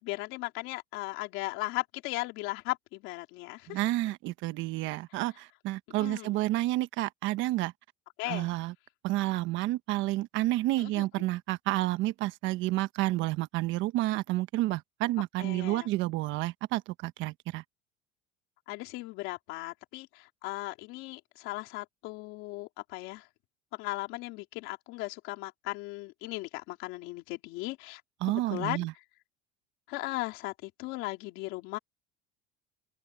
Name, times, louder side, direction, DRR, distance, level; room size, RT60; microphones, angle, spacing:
voice 1, 0.0-3.8 5.1-5.2 6.0-6.4 8.2-8.5 10.8-11.1 15.4-15.9 18.7-23.3 23.7-28.0 28.3-28.8 29.9-31.8, left 21 dB, 70° left, 3.6 m, -37 dB
voice 2, 3.7-7.7 8.3-8.7 9.0-17.6 28.2-28.9, right 17 dB, 65° right, 1.1 m, -30 dB
open air
cardioid pair, 130°, 21 cm